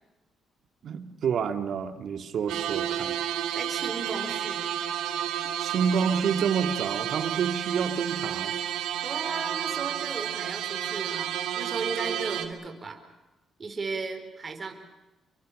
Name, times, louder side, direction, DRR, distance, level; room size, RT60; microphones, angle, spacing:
voice 1, 0.8-3.2 5.6-8.5, right 6 dB, 60° right, 9 dB, 2.3 m, -28 dB
sound 1, 2.5-12.5, right 10 dB, 90° right, 2.5 m, -31 dB
voice 2, 3.5-4.7 9.0-13.0 13.6-14.7, right 4 dB, 35° right, 6 dB, 4.5 m, -35 dB
28.0 x 23.5 x 6.6 m, 1.0 s
cardioid pair, 90°, 0 cm